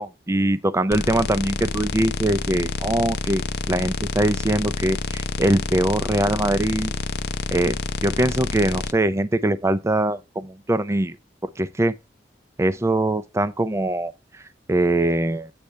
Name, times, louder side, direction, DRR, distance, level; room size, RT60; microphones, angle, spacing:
voice 1, 0.0-6.9 7.5-7.8 8.0-11.2 11.4-12.0 12.6-14.1 14.7-15.5, right 1 dB, 15° right, 0.4 m, -22 dB
sound 1, 0.9-8.9, left 3 dB, 65° left, 0.6 m, -28 dB
8.4 x 3.3 x 6.3 m
head